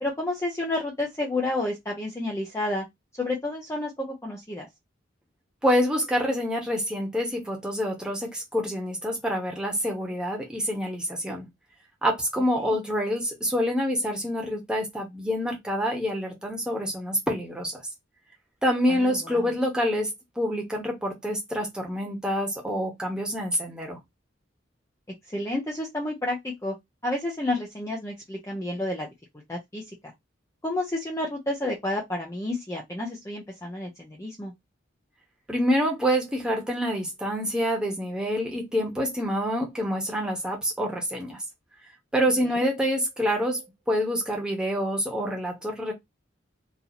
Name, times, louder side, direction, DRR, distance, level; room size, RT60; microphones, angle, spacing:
voice 1, 0.0-2.9 3.2-4.7 12.6-12.7 18.9-19.5 25.3-26.8 27.0-29.1 29.5-30.1 30.6-34.5 42.4-42.6, left 2 dB, 15° left, 0.6 m, -30 dB
voice 2, 5.6-11.5 12.0-17.8 18.6-20.1 20.4-24.0 35.5-41.4 42.1-45.9, equal, 5° right, 1.1 m, -27 dB
4.0 x 2.7 x 2.9 m
head